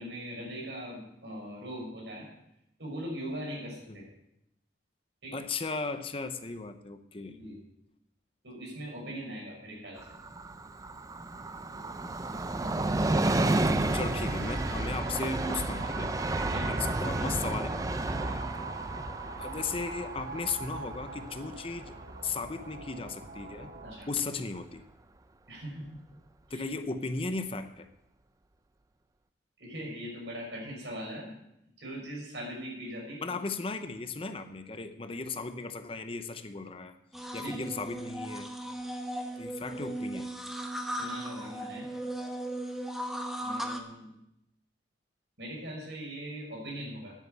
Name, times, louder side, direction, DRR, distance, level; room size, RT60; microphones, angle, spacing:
voice 1, 0.0-2.3 2.8-4.0 5.2-5.3 7.4-7.6 8.4-10.0 16.4-16.8 23.8-24.1 25.5-25.9 26.5-26.6 29.6-31.3 31.8-33.4 37.4-37.7 39.7-39.8 40.9-41.9 43.4-44.1 45.4-47.1, equal, 80° right, -2 dB, 6.0 m, -40 dB
voice 2, 5.3-7.4 13.4-16.1 16.7-18.5 19.4-22.0 22.2-23.7 24.1-24.8 26.5-27.9 33.2-37.0 37.3-38.5 39.4-40.3, left 4 dB, 30° left, 9 dB, 0.7 m, -36 dB
Train, 10.0-23.3 23.6-23.7, right 2 dB, 20° right, 0.5 m, -32 dB
sound 1, 13.9-24.0, right 4 dB, 60° right, 1.2 m, -43 dB
sound 2, 37.1-43.8, right 1 dB, ahead, 1.0 m, -37 dB
10.0 x 8.6 x 8.0 m, 0.83 s
head